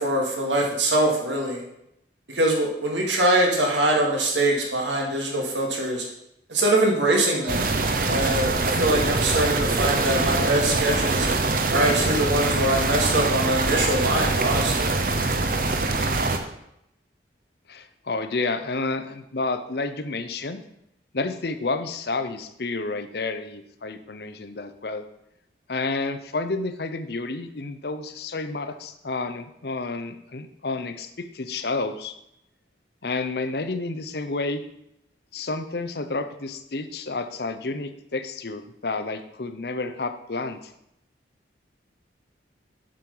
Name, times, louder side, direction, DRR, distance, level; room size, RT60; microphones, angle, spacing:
voice 1, 0.0-1.6 2.3-6.0 6.5-7.7 8.0-11.3 11.7-14.9, right 1 dB, 90° right, 0 dB, 2.2 m, -23 dB
sound 1, 7.5-16.4, right 3 dB, 50° right, 0.9 m, -24 dB
voice 2, 17.7-20.6 21.1-25.0 25.7-32.2 33.0-34.6 35.3-40.7, left 3 dB, 60° left, 10 dB, 0.7 m, -30 dB
7.6 x 6.5 x 5.4 m, 0.79 s
head